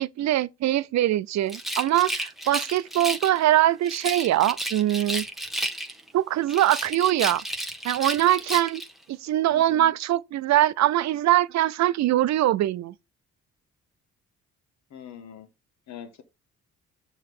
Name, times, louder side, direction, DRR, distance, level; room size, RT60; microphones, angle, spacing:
voice 1, 0.0-5.2 6.1-7.4 7.8-8.8 9.2-12.9, right 13 dB, 65° right, 0.5 m, -22 dB
Rattle, 1.5-3.4 3.8-6.1 6.5-8.9, right 1 dB, ahead, 1.0 m, -32 dB
voice 2, 9.5-9.9 14.9-15.5 15.9-16.2, left 9 dB, 65° left, 1.4 m, -42 dB
6.8 x 3.2 x 4.8 m
cardioid pair, 90°, 30 cm